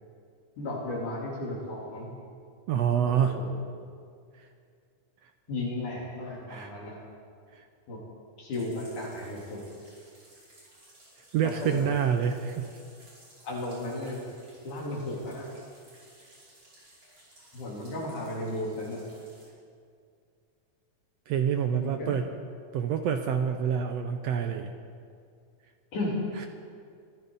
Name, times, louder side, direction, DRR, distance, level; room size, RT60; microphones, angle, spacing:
voice 1, 0.6-2.1 3.1-3.6 5.5-7.0 7.9-8.0 8.4-9.6 11.4-11.8 13.4-14.3 14.6-15.5 17.5-19.1 21.7-22.1 25.9-26.2, left 1 dB, 75° left, -4 dB, 5.0 m, -34 dB
voice 2, 2.7-3.3 4.4-4.5 6.5-6.7 7.6-7.7 11.3-12.7 21.3-22.3 22.7-24.7, right 8 dB, 75° right, 6 dB, 1.6 m, -27 dB
sound 1, 8.5-19.5, right 1 dB, 45° right, 6.0 m, -57 dB
23.5 x 15.0 x 4.1 m, 2.3 s
omnidirectional pair, 3.5 m